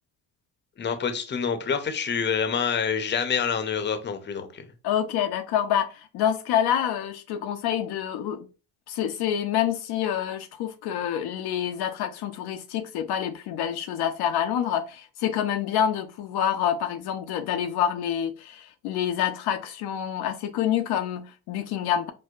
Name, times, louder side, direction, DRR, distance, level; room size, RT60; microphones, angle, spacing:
voice 1, 0.8-4.7, left 6 dB, 25° left, 0.6 m, -27 dB
voice 2, 4.8-8.5 8.9-22.1, left 9 dB, 70° left, 0.5 m, -27 dB
4.5 x 2.1 x 2.4 m
supercardioid pair, 75°, 41 cm